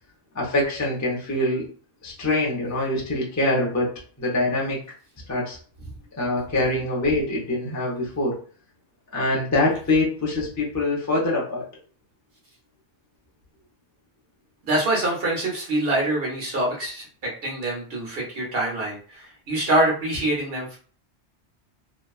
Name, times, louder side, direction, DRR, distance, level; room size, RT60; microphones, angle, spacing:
voice 1, 0.3-1.7 2.0-4.8 5.3-5.6 6.2-8.4 9.1-11.6, left 2 dB, 20° left, -4 dB, 0.6 m, -24 dB
voice 2, 14.6-20.8, right 1 dB, 60° right, -3 dB, 1.2 m, -25 dB
2.8 x 2.2 x 2.3 m, 0.42 s
omnidirectional pair, 1.1 m